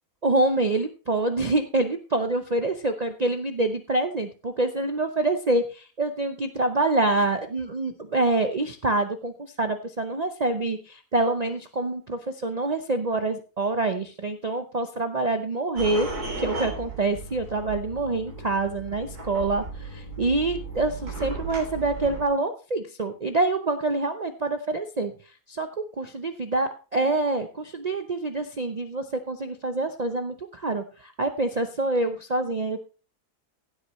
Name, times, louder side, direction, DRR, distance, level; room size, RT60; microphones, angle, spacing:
voice 1, 0.2-9.3 9.6-16.1 16.4-19.6 19.9-25.1 25.5-25.7 26.0-32.8, right 2 dB, 45° right, 7 dB, 0.5 m, -26 dB
sound 1, 15.8-22.2, right 3 dB, 75° right, 4.0 m, -35 dB
15.5 x 8.3 x 3.1 m, 0.35 s
omnidirectional pair, 1.6 m